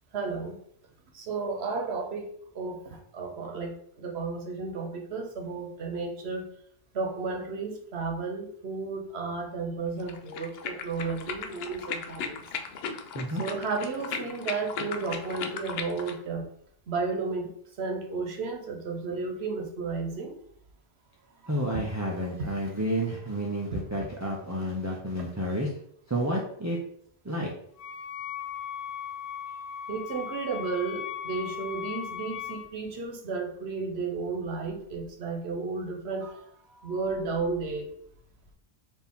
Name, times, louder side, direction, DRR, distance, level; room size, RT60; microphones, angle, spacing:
voice 1, 0.1-0.5 1.1-2.3 2.5-6.5 6.9-12.4 13.4-16.5 16.9-17.5 17.8-20.3 21.7-21.8 22.4-22.5 24.0-24.1 29.9-36.4 36.8-37.9, right 4 dB, 85° right, 3 dB, 1.1 m, -33 dB
sound 1, 10.0-16.2, left 6 dB, 75° left, 0.8 m, -37 dB
voice 2, 21.5-25.7 26.1-26.8 27.2-27.5, equal, 20° right, -3 dB, 0.6 m, -30 dB
Wind instrument woodwind instrument, 27.8-32.7, left 9 dB, 50° left, 0.9 m, -37 dB
4.3 x 2.8 x 3.6 m, 0.66 s
omnidirectional pair, 1.0 m